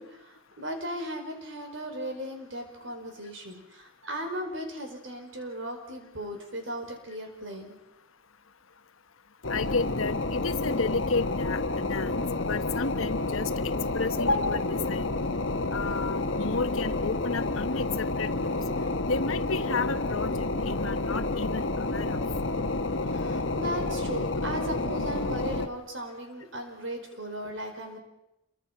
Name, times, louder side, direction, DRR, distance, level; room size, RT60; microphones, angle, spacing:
voice 1, 0.0-7.8 23.1-28.0, right 1 dB, 70° right, 4 dB, 5.0 m, -37 dB
sound 1, 9.4-25.7, left 2 dB, 70° left, 1.3 m, -29 dB
voice 2, 9.5-13.5 13.9-15.1 15.7-18.6 19.0-22.2, left 3 dB, 85° left, 10 dB, 1.2 m, -31 dB
28.0 x 23.0 x 5.9 m, 0.90 s
head